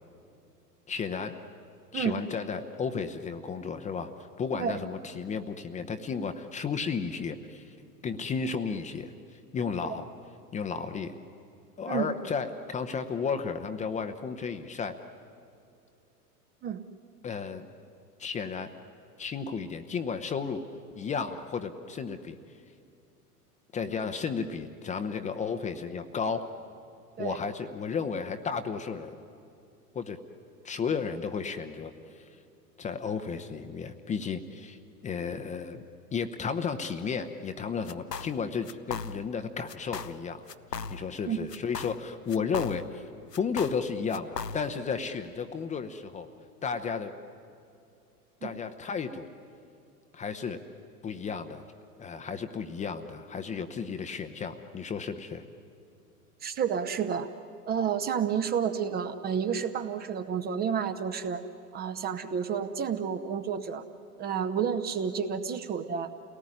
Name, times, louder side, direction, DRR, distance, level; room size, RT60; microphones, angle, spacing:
voice 1, 0.9-1.4 1.9-4.1 4.4-7.7 8.0-10.0 10.5-11.2 11.8-15.0 17.2-17.7 18.2-18.7 19.2-20.6 21.0-22.4 23.7-26.5 27.2-29.1 29.9-30.2 30.6-32.3 32.8-35.8 36.1-40.5 40.9-43.1 43.4-46.3 46.6-47.1 48.4-49.3 50.1-50.6 51.0-51.6 52.0-55.4, left 5 dB, 15° left, 7 dB, 0.8 m, -33 dB
sound 1, 37.9-38.4 38.6-39.4 39.7-40.2 40.5-41.2 41.5-43.0 43.3-44.8, left 5 dB, 85° left, 0.8 m, -38 dB
voice 2, 56.4-57.3 57.7-61.4 61.7-63.8 64.2-66.1, right 7 dB, 20° right, 8 dB, 0.8 m, -30 dB
29.0 x 18.5 x 9.9 m, 2.5 s
figure-of-eight pair, 95°, 47 cm